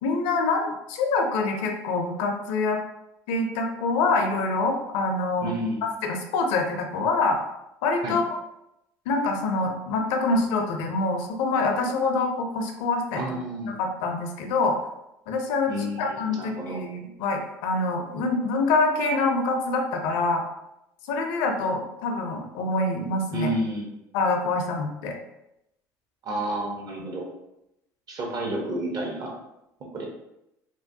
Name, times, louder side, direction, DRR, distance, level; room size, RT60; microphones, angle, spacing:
voice 1, 0.0-2.8 3.3-5.5 6.0-7.4 7.8-8.2 9.1-13.2 13.6-14.8 15.3-15.7 16.0-20.4 21.1-23.5 24.1-25.1, left 3 dB, 75° left, 3 dB, 0.5 m, -25 dB
voice 2, 5.4-5.8 8.0-8.2 13.2-13.7 15.7-16.8 23.3-23.9 26.2-27.3 28.1-29.3 29.9-30.1, right 1 dB, 45° right, 0 dB, 0.9 m, -30 dB
3.0 x 2.1 x 2.6 m, 0.85 s
supercardioid pair, 85°, 9 cm